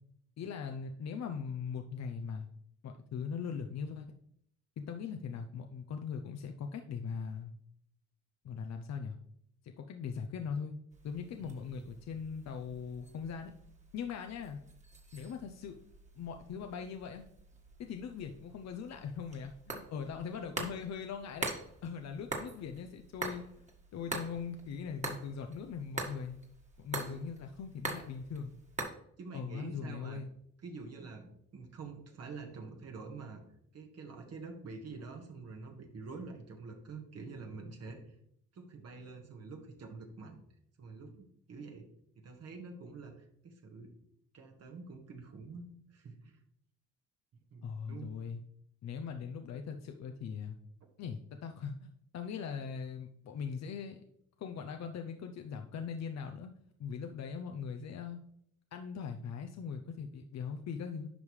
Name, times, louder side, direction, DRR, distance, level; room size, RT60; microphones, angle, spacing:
voice 1, 0.4-2.5 2.8-4.1 4.8-7.5 8.4-9.2 9.6-10.7 11.0-13.5 13.9-14.6 15.1-15.8 16.2-17.2 17.8-21.5 21.8-23.4 23.9-26.4 26.8-28.5 29.3-30.3 47.6-48.4 48.8-50.6 51.0-54.0 54.4-56.5 56.8-58.2 58.7-61.1, left 6 dB, 60° left, 5 dB, 0.7 m, -40 dB
sound 1, 10.9-28.8, right 2 dB, 25° right, 1.7 m, -45 dB
voice 2, 11.4-11.9 27.0-27.2 29.2-30.2 30.6-33.4 33.7-38.1 38.5-40.4 40.8-41.8 42.2-43.9 44.3-46.4 47.5-48.1, right 4 dB, 55° right, 2 dB, 1.6 m, -47 dB
10.0 x 5.4 x 3.2 m, 0.70 s
cardioid pair, 90°, 30 cm